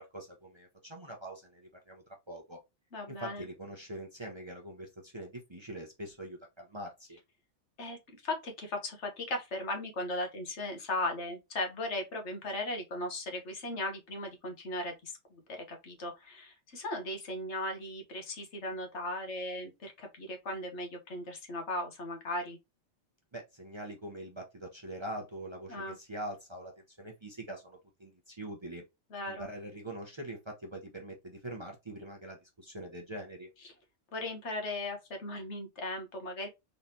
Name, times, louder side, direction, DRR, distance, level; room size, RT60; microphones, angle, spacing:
voice 1, 0.0-2.6 3.1-7.2 23.3-28.8 29.3-33.5, right 1 dB, 25° right, 0.8 m, -43 dB
voice 2, 2.9-3.4 7.8-8.0 8.2-22.6 25.7-26.0 29.1-29.5 33.6-33.7 34.1-36.5, left 1 dB, 65° left, 1.4 m, -37 dB
3.9 x 3.3 x 2.7 m
omnidirectional pair, 1.3 m